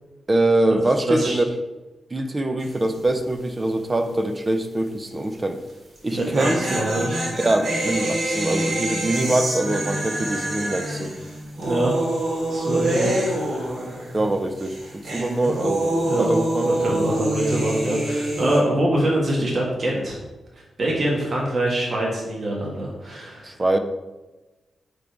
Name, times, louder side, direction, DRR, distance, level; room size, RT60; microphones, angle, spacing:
voice 1, 0.3-1.4 2.1-5.6 6.0-6.6 7.3-11.1 14.1-14.8 15.1-16.9 18.4-18.5 23.4-23.8, right 1 dB, 20° right, 7 dB, 0.5 m, -23 dB
voice 2, 1.1-1.4 6.1-7.3 11.6-11.9 12.5-13.7 16.0-16.3 16.6-20.2 20.5-23.6, right 1 dB, 40° right, -3 dB, 1.6 m, -24 dB
sound 1, 2.6-3.0 3.2-3.3 6.0-14.3 14.6-18.6, right 1 dB, 60° right, 2.2 m, -26 dB
8.9 x 3.7 x 4.6 m, 1.1 s
wide cardioid pair, 140°, 0 cm